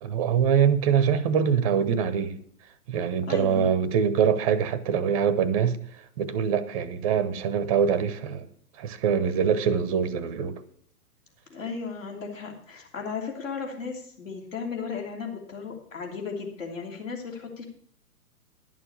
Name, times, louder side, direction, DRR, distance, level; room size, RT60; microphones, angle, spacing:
voice 1, 0.0-2.4 2.9-5.8 6.2-8.5 8.8-10.6, right 7 dB, 25° right, 0.7 m, -24 dB
voice 2, 3.3-3.7 11.5-17.6, left 5 dB, 55° left, 3.2 m, -35 dB
11.0 x 6.8 x 7.0 m
figure-of-eight pair, 125°, 45 cm